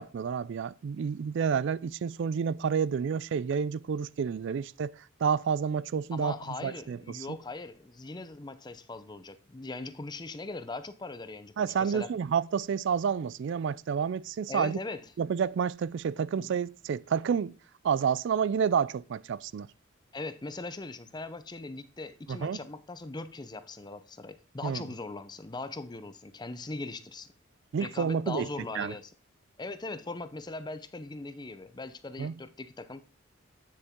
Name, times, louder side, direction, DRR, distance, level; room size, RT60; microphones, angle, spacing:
voice 1, 0.0-6.3 6.6-7.4 11.6-14.8 15.2-17.5 17.8-19.7 22.3-22.6 24.6-24.8 27.7-28.5 28.7-28.9 32.2-32.3, right 7 dB, 60° right, 0.3 m, -29 dB
voice 2, 6.1-12.1 14.5-15.1 16.4-16.5 20.1-27.3 27.8-29.1 29.6-33.0, left 3 dB, 20° left, 0.6 m, -40 dB
9.6 x 6.8 x 3.6 m
head